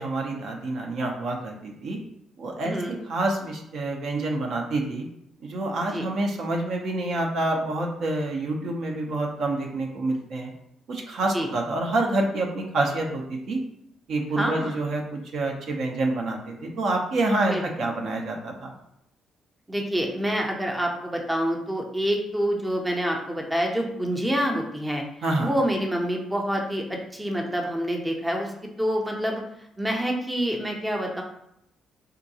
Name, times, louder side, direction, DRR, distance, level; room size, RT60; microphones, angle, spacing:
voice 1, 0.0-2.0 2.4-5.1 5.4-10.5 10.9-13.6 14.1-18.7 25.2-25.5, right 2 dB, 65° right, 1 dB, 0.6 m, -27 dB
voice 2, 2.6-3.0 5.9-6.0 11.3-11.5 14.4-14.8 17.5-17.6 19.7-25.0 25.4-26.8 27.1-28.5 28.8-29.4 29.8-31.2, equal, 10° right, 1 dB, 0.6 m, -27 dB
3.7 x 2.2 x 2.7 m, 0.78 s
cardioid pair, 90°, 0 cm